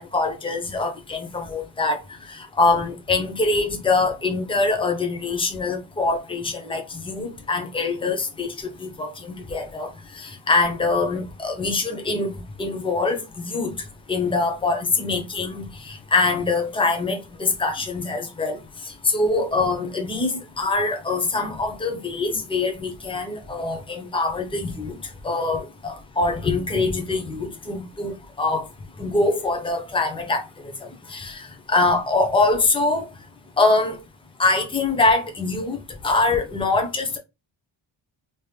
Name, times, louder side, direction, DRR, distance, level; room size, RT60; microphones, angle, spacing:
voice 1, 0.0-2.0 2.3-9.9 10.2-13.7 14.1-18.6 19.0-24.9 25.2-28.7 29.0-30.4 31.1-31.4 31.7-33.0 33.6-34.0 34.4-35.8 36.0-37.2, left 3 dB, 10° left, 0.8 m, -24 dB
3.4 x 2.9 x 3.2 m
wide cardioid pair, 135°, 48 cm